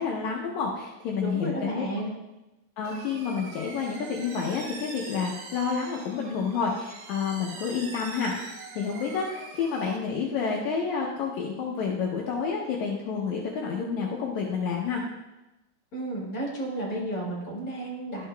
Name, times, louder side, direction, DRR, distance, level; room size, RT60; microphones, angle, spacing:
voice 1, 0.0-1.9 2.8-8.3 8.8-15.0, left 5 dB, 70° left, -2 dB, 2.0 m, -29 dB
voice 2, 1.2-2.1 15.9-18.3, right 1 dB, 35° left, -4 dB, 1.6 m, -32 dB
sound 1, 2.8-10.0, right 3 dB, 75° right, 2.5 m, -43 dB
12.0 x 6.7 x 2.2 m, 0.99 s
omnidirectional pair, 3.8 m